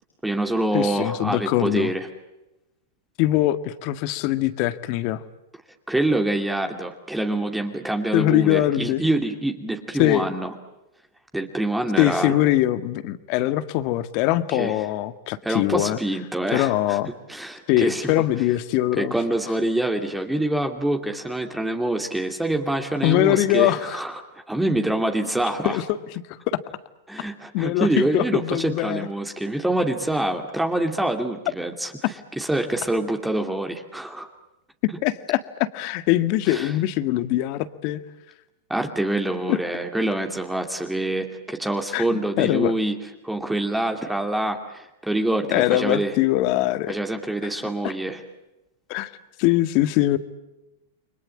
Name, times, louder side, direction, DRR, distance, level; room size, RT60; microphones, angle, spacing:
voice 1, 0.2-2.1 5.9-10.5 11.3-12.4 14.5-14.9 15.4-17.0 17.3-18.3 19.0-25.8 27.1-34.3 36.5-36.7 38.7-46.1 46.9-48.2, right 1 dB, 5° right, 4 dB, 2.6 m, -26 dB
voice 2, 0.7-1.9 3.2-5.2 8.1-9.0 10.0-10.3 12.0-16.0 16.5-17.1 17.7-19.1 23.0-24.0 25.7-26.0 26.5-26.6 27.5-29.1 35.0-38.0 39.5-39.6 41.9-42.7 45.5-46.9 48.9-49.1 49.4-50.2, left 15 dB, 50° left, 12 dB, 1.8 m, -22 dB
30.0 x 23.0 x 8.6 m, 0.95 s
hypercardioid pair, 110°, 0 cm